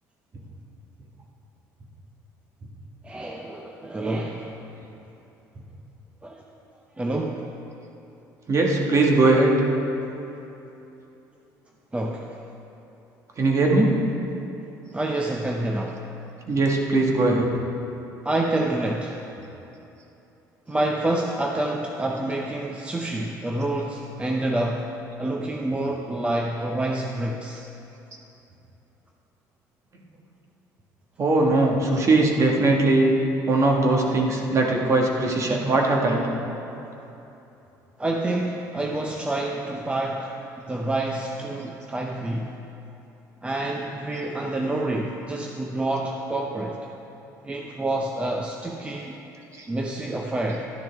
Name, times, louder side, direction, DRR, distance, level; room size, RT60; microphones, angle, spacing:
voice 1, 3.0-4.5 6.2-6.4 7.0-7.5 11.9-12.4 14.9-16.1 18.2-19.2 20.7-27.6 38.0-42.6 43.4-46.8 47.4-49.2 49.7-50.6, right 1 dB, 15° right, 1 dB, 0.7 m, -28 dB
voice 2, 8.5-9.6 13.4-14.0 16.5-17.5 31.2-33.1 33.5-36.3 44.2-44.3 49.6-49.7, right 2 dB, 40° right, 0 dB, 1.7 m, -20 dB
12.0 x 10.5 x 3.5 m, 3.0 s
supercardioid pair, 90°, 8 cm